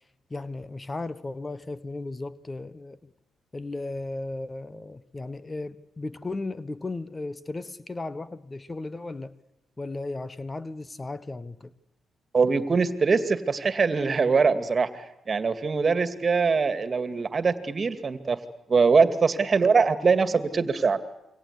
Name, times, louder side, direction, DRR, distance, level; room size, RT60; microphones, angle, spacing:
voice 1, 0.3-3.0 3.5-9.3 9.8-11.7, left 2 dB, 25° left, 1.3 m, -35 dB
voice 2, 12.3-18.4 18.7-21.0, right 5 dB, 45° right, 2.4 m, -23 dB
27.5 x 24.5 x 8.3 m
hypercardioid pair, 40°, 0 cm